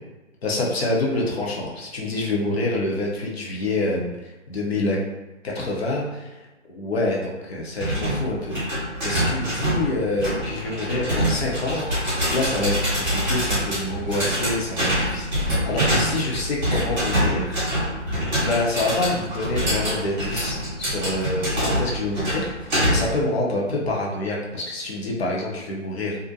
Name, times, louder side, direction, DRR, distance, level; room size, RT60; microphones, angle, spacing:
voice 1, 0.4-5.0 5.5-6.4 6.6-17.6 18.4-26.2, left 2 dB, 55° left, -3 dB, 0.7 m, -27 dB
sound 1, 7.8-23.2, equal, 10° right, 0.8 m, -25 dB
2.5 x 2.1 x 2.7 m, 1.1 s
hypercardioid pair, 160°, 37 cm